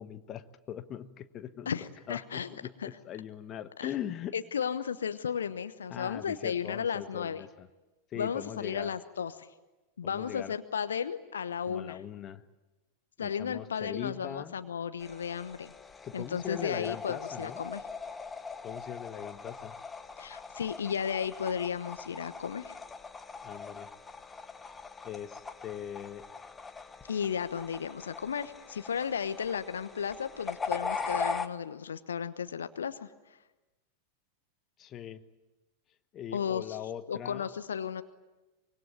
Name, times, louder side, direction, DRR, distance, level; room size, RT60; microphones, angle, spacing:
voice 1, 0.0-4.3 5.9-7.7 8.1-8.9 10.0-10.5 11.6-12.4 13.2-14.5 16.0-17.6 18.6-19.8 23.4-23.9 25.0-26.3 34.8-35.2 36.1-37.5, left 10 dB, 30° left, 12 dB, 1.2 m, -41 dB
voice 2, 1.7-2.5 2.8-2.9 3.8-3.9 4.3-7.4 8.1-9.5 10.0-12.0 13.2-15.7 16.1-17.8 20.2-22.7 27.1-33.1 36.3-36.8 37.1-38.0, left 7 dB, 70° left, 11 dB, 1.1 m, -34 dB
sound 1, 15.0-31.5, left 4 dB, 15° left, 1.2 m, -41 dB
25.0 x 23.0 x 9.5 m, 1.1 s
figure-of-eight pair, 90°, 0 cm